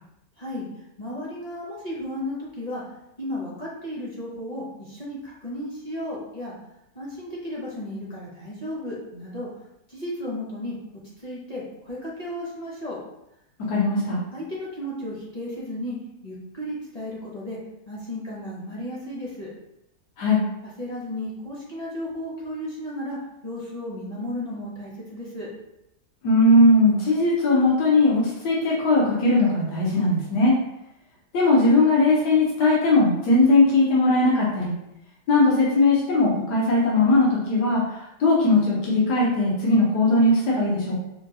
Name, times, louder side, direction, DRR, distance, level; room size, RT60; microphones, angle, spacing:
voice 1, 0.4-2.8 3.2-6.5 6.9-9.5 9.9-10.7 11.2-13.0 14.3-16.0 16.2-17.6 17.9-19.5 20.8-23.2 23.4-25.5, left 1 dB, 40° left, -6 dB, 0.6 m, -34 dB
voice 2, 13.7-14.2 20.2-20.4 26.2-30.5 31.3-34.7 35.3-41.0, left 2 dB, 85° left, -5 dB, 1.4 m, -19 dB
5.0 x 2.3 x 2.7 m, 0.85 s
omnidirectional pair, 1.8 m